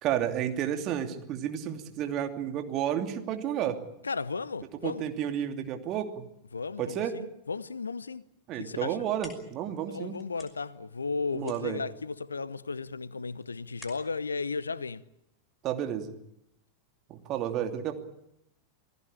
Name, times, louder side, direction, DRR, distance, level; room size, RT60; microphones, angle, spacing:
voice 1, 0.0-3.8 4.8-6.3 6.8-7.2 8.5-10.2 11.3-11.8 15.6-16.1 17.1-18.0, right 10 dB, 35° right, 2.7 m, -31 dB
voice 2, 4.0-5.1 6.5-8.2 8.6-9.0 9.9-15.0, left 4 dB, 75° left, 0.9 m, -35 dB
sound 1, 8.8-15.6, left 2 dB, 5° left, 5.8 m, -55 dB
28.0 x 18.0 x 8.8 m
figure-of-eight pair, 90°, 0 cm